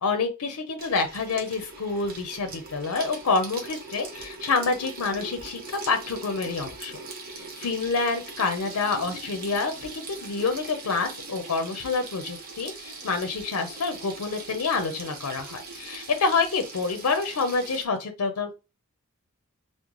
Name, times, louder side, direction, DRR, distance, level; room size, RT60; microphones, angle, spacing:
voice 1, 0.0-7.0 7.3-18.5, left 4 dB, 85° left, 7 dB, 0.5 m, -27 dB
Water tap faucet / Sink (filling or washing), 0.8-17.9, right 3 dB, 40° right, 0.7 m, -41 dB
3.7 x 2.1 x 3.0 m, 0.27 s
head